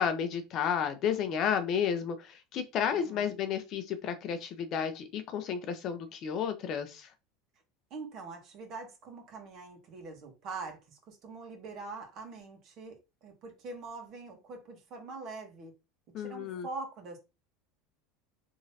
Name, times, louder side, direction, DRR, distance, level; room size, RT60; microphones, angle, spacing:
voice 1, 0.0-7.1 16.1-16.7, left 8 dB, 50° left, 0.6 m, -32 dB
voice 2, 2.9-3.3 7.9-15.7 16.2-17.2, right 3 dB, 50° right, 1.4 m, -44 dB
3.6 x 3.1 x 2.8 m
supercardioid pair, 120°, 0 cm